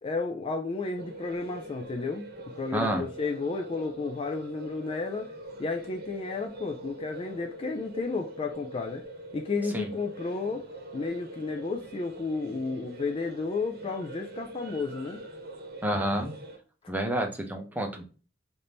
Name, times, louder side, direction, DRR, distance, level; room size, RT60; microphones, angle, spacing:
voice 1, 0.0-2.2 2.6-5.3 5.6-9.1 9.3-10.6 10.9-15.2, left 4 dB, 25° left, 0.3 m, -32 dB
sound 1, 0.9-16.6, right 1 dB, 50° right, 1.0 m, -43 dB
voice 2, 2.7-3.0 9.7-9.9 15.8-16.3 16.9-18.0, right 1 dB, 10° right, 0.6 m, -29 dB
3.5 x 2.6 x 4.2 m
head